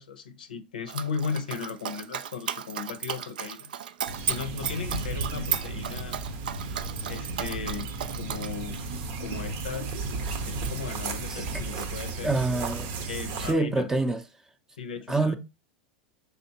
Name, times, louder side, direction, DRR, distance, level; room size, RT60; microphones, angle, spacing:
voice 1, 0.0-3.7 4.3-6.2 7.1-8.8 9.2-9.9 10.4-12.3 13.1-13.9 14.8-15.3, left 6 dB, 85° left, 0.6 m, -36 dB
Dog, 0.9-12.0 12.3-13.3, right 8 dB, 80° right, 0.3 m, -36 dB
sound 1, 4.0-13.5, right 3 dB, 60° right, 0.8 m, -34 dB
voice 2, 12.2-12.9 13.4-14.2 15.1-15.3, right 2 dB, 10° right, 0.5 m, -26 dB
5.6 x 3.4 x 2.8 m
hypercardioid pair, 95°, 5 cm